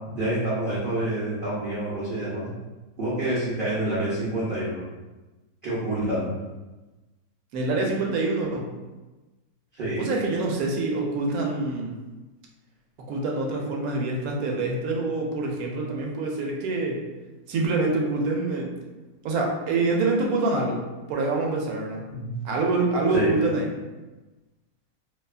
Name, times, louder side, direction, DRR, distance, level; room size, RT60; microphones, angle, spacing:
voice 1, 0.1-2.5 3.0-4.8 5.6-6.3 9.7-10.0 22.1-22.3 23.1-23.3, right 1 dB, 55° right, -9 dB, 0.6 m, -27 dB
voice 2, 7.5-8.7 10.0-12.0 13.0-17.0 17.5-18.7 19.2-20.8 21.1-22.1 22.4-23.7, right 3 dB, 75° right, 0 dB, 1.0 m, -26 dB
2.7 x 2.3 x 2.3 m, 1.2 s
omnidirectional pair, 1.6 m